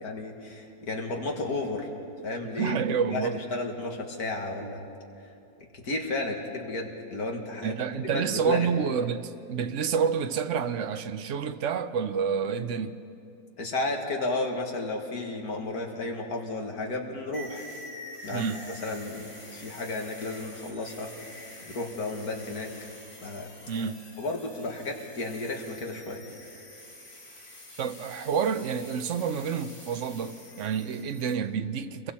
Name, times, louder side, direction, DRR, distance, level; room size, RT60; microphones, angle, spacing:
voice 1, 0.0-1.9 2.2-2.8 3.1-4.8 5.7-7.7 8.1-8.7 13.6-17.7 18.2-18.5 18.8-21.1 21.7-22.7 23.2-23.5 24.2-26.2, left 2 dB, 55° left, 2.2 m, -33 dB
voice 2, 2.6-3.4 7.6-13.0 18.3-18.7 23.7-24.1 27.8-32.1, right 6 dB, 65° right, 0.7 m, -29 dB
sound 1, 17.3-31.3, left 1 dB, 35° left, 3.5 m, -47 dB
29.0 x 22.5 x 4.3 m
omnidirectional pair, 2.0 m